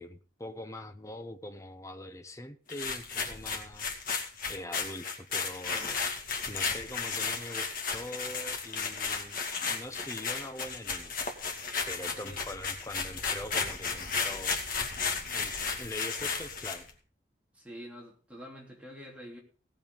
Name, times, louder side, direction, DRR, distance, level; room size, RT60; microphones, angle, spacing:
voice 1, 0.0-3.9 4.5-11.2 11.9-14.6 15.3-16.9, left 1 dB, 15° left, 7 dB, 0.9 m, -43 dB
sound 1, 2.7-16.9, left 5 dB, 45° left, 2.3 m, -34 dB
voice 2, 12.1-12.4 17.5-19.4, equal, 5° right, -2 dB, 3.1 m, -47 dB
18.0 x 7.1 x 5.3 m, 0.39 s
head